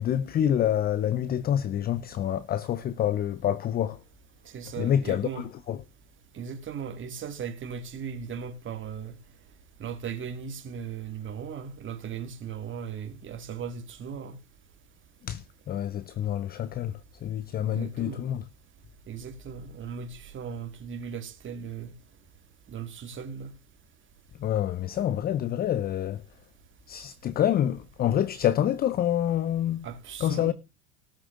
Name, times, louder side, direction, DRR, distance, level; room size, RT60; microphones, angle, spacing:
voice 1, 0.0-4.0 4.8-5.8 15.2-18.4 24.4-26.2 26.9-29.9 30.2-30.5, left 10 dB, 20° left, 0.6 m, -27 dB
voice 2, 4.5-5.4 6.3-9.1 9.8-14.4 17.6-18.2 19.1-21.9 22.7-23.5 29.8-30.5, right 7 dB, 25° right, 2.0 m, -37 dB
18.5 x 6.3 x 3.7 m
hypercardioid pair, 110°, 44 cm